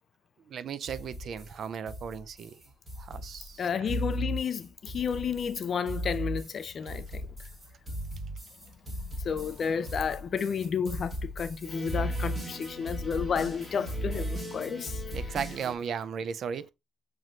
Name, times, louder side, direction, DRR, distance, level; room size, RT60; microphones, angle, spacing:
voice 1, 0.5-2.6 3.0-3.9 15.1-16.7, right 7 dB, 50° right, 0.3 m, -36 dB
sound 1, 0.9-15.8, equal, 20° right, 1.5 m, -36 dB
voice 2, 3.6-7.2 9.3-14.9, left 6 dB, 40° left, 0.4 m, -31 dB
5.8 x 3.0 x 2.4 m
cardioid pair, 150°, 0 cm